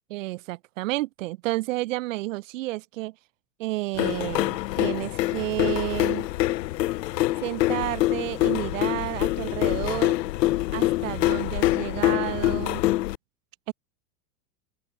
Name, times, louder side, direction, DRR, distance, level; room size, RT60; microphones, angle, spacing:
voice 1, 0.1-3.1 3.6-6.3 7.4-10.2 10.7-12.8 13.7-13.8, right 18 dB, 50° right, 1.2 m, -31 dB
sound 1, 4.0-13.2, left 16 dB, 75° left, 1.0 m, -25 dB
open air
supercardioid pair, 170°, 50 cm